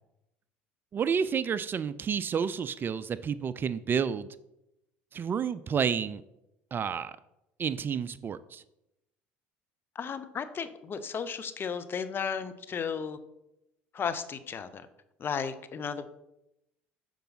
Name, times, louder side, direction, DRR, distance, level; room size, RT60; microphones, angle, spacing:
voice 1, 0.9-4.3 5.1-6.2 6.7-7.1 7.6-8.6, right 7 dB, 35° right, 15 dB, 0.3 m, -30 dB
voice 2, 9.9-13.2 13.9-14.9 15.2-16.1, left 6 dB, 40° left, 12 dB, 0.6 m, -34 dB
6.8 x 4.6 x 4.0 m, 0.88 s
hypercardioid pair, 75°, 6 cm